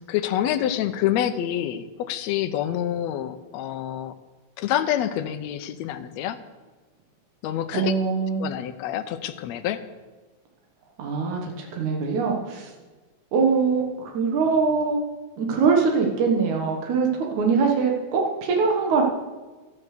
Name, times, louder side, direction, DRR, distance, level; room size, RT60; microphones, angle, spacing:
voice 1, 0.1-4.1 4.6-6.4 7.4-7.9 8.4-9.8, left 11 dB, 70° left, 9 dB, 1.9 m, -27 dB
voice 2, 7.7-8.5 11.0-12.7 13.3-15.0 15.4-19.0, right 5 dB, 75° right, 1 dB, 2.8 m, -23 dB
13.0 x 9.9 x 6.6 m, 1.3 s
omnidirectional pair, 3.5 m